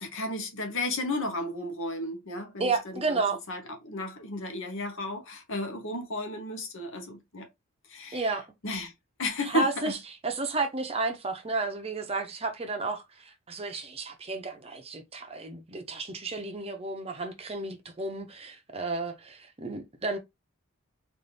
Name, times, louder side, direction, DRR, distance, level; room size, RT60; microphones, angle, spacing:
voice 1, 0.0-7.5 7.9-8.3 8.6-8.9 9.2-9.9, left 1 dB, 60° left, 1.0 m, -33 dB
voice 2, 2.6-3.4 8.1-8.5 9.4-10.0 10.2-20.2, right 3 dB, 25° right, 0.7 m, -32 dB
4.0 x 2.6 x 3.3 m
head